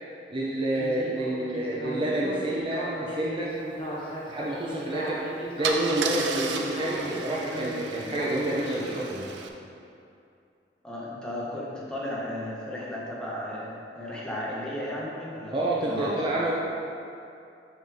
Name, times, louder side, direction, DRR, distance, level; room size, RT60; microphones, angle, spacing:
voice 1, 0.3-3.5 4.3-5.2 5.6-9.3 15.5-16.5, right 1 dB, 30° right, -5 dB, 0.5 m, -28 dB
Speech synthesizer, 0.7-9.1, equal, 30° left, 1.0 m, -37 dB
Car / Engine starting / Idling, 4.9-5.1 5.6-9.5, right 5 dB, 75° right, 0.5 m, -34 dB
voice 2, 10.8-15.5 15.8-16.5, left 1 dB, 5° left, -6 dB, 1.1 m, -34 dB
6.5 x 5.4 x 3.4 m, 2.6 s
head